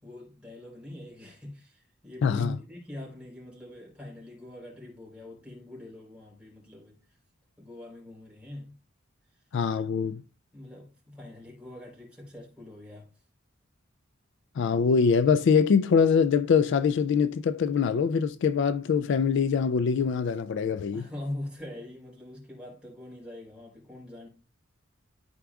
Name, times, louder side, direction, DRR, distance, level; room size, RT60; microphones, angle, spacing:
voice 1, 0.0-7.2 7.6-8.7 10.5-13.1 20.9-24.3, left 1 dB, 5° right, 3.6 m, -43 dB
voice 2, 2.2-2.5 9.5-10.2 14.6-21.1, left 6 dB, 65° left, 0.3 m, -23 dB
13.5 x 4.9 x 2.3 m
head